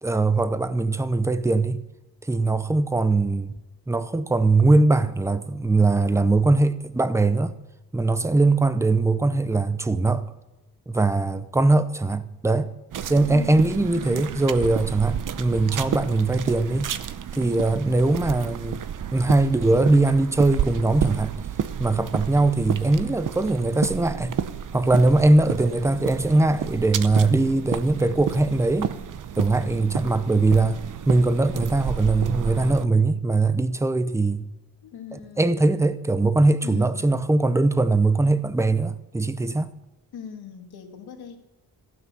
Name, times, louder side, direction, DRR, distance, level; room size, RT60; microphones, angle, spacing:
voice 1, 0.0-1.8 2.3-3.5 3.9-7.5 7.9-10.2 10.9-12.7 13.1-16.9 17.4-18.8 19.1-21.3 21.8-24.4 24.7-28.9 29.4-34.5 35.1-39.7, right 2 dB, 10° right, 0.6 m, -21 dB
sound 1, 12.9-32.9, right 9 dB, 55° right, 0.8 m, -31 dB
voice 2, 13.2-14.0 34.8-35.8 36.6-37.0 40.1-41.4, left 7 dB, 90° left, 2.1 m, -40 dB
15.0 x 9.6 x 6.9 m
cardioid pair, 120°, 37 cm